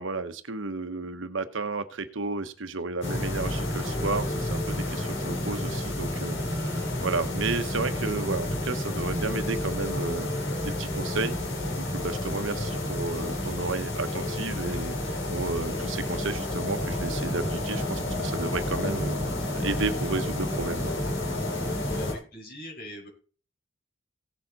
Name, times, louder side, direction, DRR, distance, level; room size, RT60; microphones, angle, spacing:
voice 1, 0.0-10.3 10.6-11.4 11.8-15.0 15.3-19.2 19.5-20.9, right 3 dB, 75° right, 10 dB, 1.1 m, -32 dB
sound 1, 3.0-22.1, left 1 dB, 65° left, 3.6 m, -30 dB
voice 2, 21.8-23.1, equal, 45° left, 1 dB, 5.1 m, -41 dB
17.0 x 7.1 x 4.1 m, 0.40 s
head